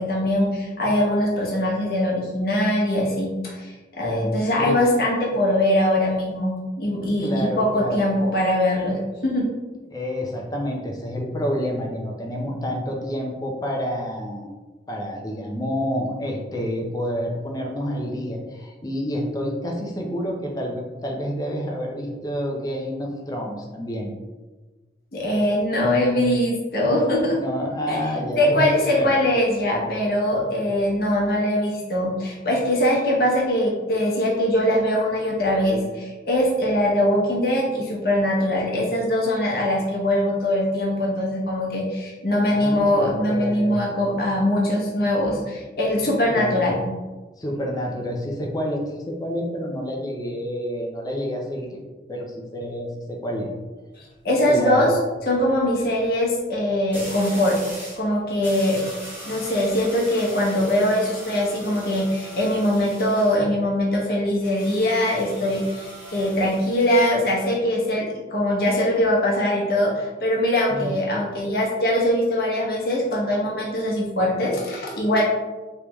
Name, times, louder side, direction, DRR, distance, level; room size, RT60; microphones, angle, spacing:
voice 1, 0.0-9.5 25.1-27.4 27.9-28.0 28.4-46.8 54.0-54.9 55.3-57.6 58.0-58.8 59.2-75.2, left 1 dB, 55° left, -3 dB, 1.0 m, -22 dB
voice 2, 7.2-8.0 9.9-14.5 14.9-24.1 27.1-28.7 28.9-29.1 42.5-43.9 46.3-46.7 47.4-51.8 52.1-53.5 54.5-55.0 70.7-71.0, equal, 20° left, 0 dB, 0.5 m, -28 dB
sound 1, 53.8-54.1 56.9-58.1 58.4-63.4 64.4-67.0, equal, 10° right, 1.0 m, -40 dB
3.3 x 3.3 x 3.0 m, 1.2 s
head